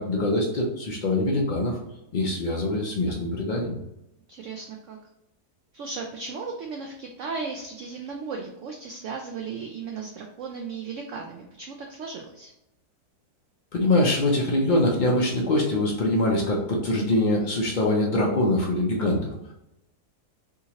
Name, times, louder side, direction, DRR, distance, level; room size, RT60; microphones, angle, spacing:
voice 1, 0.0-1.8 2.1-3.8 13.7-19.3, left 1 dB, 90° left, -2 dB, 0.4 m, -23 dB
voice 2, 4.3-5.0 5.7-12.5, right 4 dB, 70° right, 2 dB, 0.7 m, -36 dB
3.6 x 2.9 x 2.8 m, 0.87 s
omnidirectional pair, 1.7 m